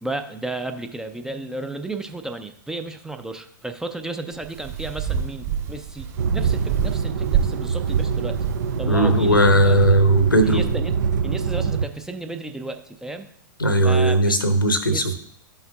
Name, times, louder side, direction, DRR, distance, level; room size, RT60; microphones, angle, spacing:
voice 1, 0.0-8.4 8.8-9.7 10.4-10.9 11.2-13.3 13.8-14.3 14.9-15.1, right 2 dB, 5° right, 7 dB, 0.4 m, -33 dB
sound 1, 4.3-10.7, right 8 dB, 40° right, 2.6 m, -29 dB
sound 2, 6.2-11.9, right 6 dB, 60° right, 0.5 m, -24 dB
voice 2, 8.9-10.6 13.6-15.1, right 1 dB, 85° left, 10 dB, 0.9 m, -17 dB
12.0 x 5.6 x 2.3 m, 0.68 s
figure-of-eight pair, 100°, 11 cm